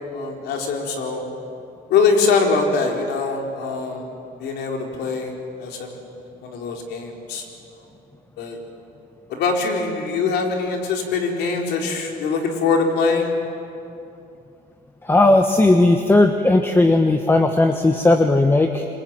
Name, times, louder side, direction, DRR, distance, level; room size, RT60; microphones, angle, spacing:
voice 1, 0.1-1.2 1.9-4.1 4.4-5.3 5.6-6.0 6.4-7.4 8.4-8.6 9.3-13.3, left 4 dB, 80° left, 2 dB, 4.5 m, -22 dB
voice 2, 15.0-18.9, left 2 dB, 15° left, 6 dB, 1.3 m, -16 dB
26.5 x 23.0 x 9.1 m, 2.7 s
cardioid pair, 110°, 17 cm